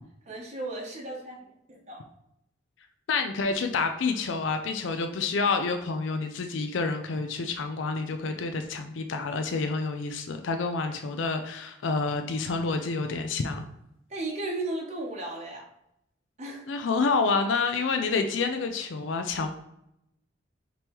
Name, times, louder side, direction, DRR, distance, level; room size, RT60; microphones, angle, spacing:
voice 1, 0.3-1.4 1.7-2.1 14.1-15.7 16.4-16.6, right 2 dB, 40° right, -1 dB, 0.8 m, -35 dB
voice 2, 3.1-13.7 16.7-19.5, left 4 dB, 85° left, 6 dB, 0.4 m, -28 dB
5.2 x 3.0 x 2.9 m, 0.81 s
head